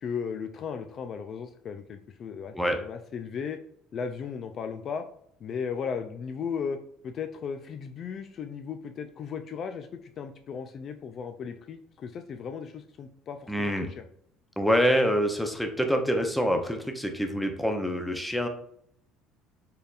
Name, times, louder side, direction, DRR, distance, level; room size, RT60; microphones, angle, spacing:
voice 1, 0.0-3.6 3.9-5.0 5.4-6.8 7.0-13.9, left 6 dB, 45° left, 7 dB, 0.3 m, -36 dB
voice 2, 13.5-13.9 14.6-18.5, equal, ahead, 4 dB, 0.7 m, -26 dB
4.4 x 3.4 x 2.4 m, 0.68 s
cardioid pair, 120°, 0 cm